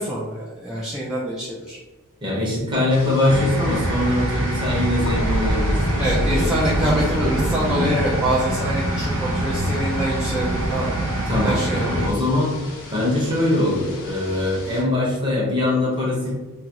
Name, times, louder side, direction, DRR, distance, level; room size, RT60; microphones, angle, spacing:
voice 1, 0.0-1.8 6.0-11.1 11.4-12.0, right 1 dB, 5° right, -8 dB, 0.4 m, -25 dB
voice 2, 2.2-7.9 11.3-12.5 12.9-16.3, left 1 dB, 20° right, -4 dB, 0.9 m, -22 dB
sound 1, 2.9-14.8, left 2 dB, 65° left, 0.7 m, -39 dB
sound 2, 3.3-12.1, right 1 dB, 65° right, 0.4 m, -25 dB
sound 3, 5.0-11.3 11.7-12.0, equal, 85° left, 0.3 m, -29 dB
2.8 x 2.4 x 2.9 m, 1.2 s
head